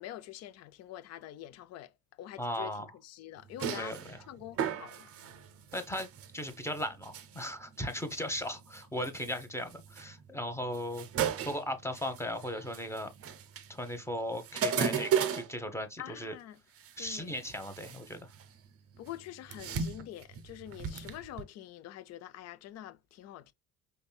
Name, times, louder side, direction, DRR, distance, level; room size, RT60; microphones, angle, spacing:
voice 1, 0.0-2.7 3.0-5.1 16.0-16.6 17.0-17.4 19.0-23.5, left 13 dB, 35° left, 0.5 m, -46 dB
voice 2, 2.4-2.9 3.8-4.2 5.7-6.1 6.3-13.1 13.7-16.3 17.0-18.3, left 1 dB, 5° left, 0.9 m, -37 dB
sound 1, 3.4-15.5 16.8-16.9 17.3-18.6 18.9-21.4, right 7 dB, 30° right, 0.6 m, -36 dB
5.2 x 2.7 x 2.2 m
figure-of-eight pair, 60°, 45 cm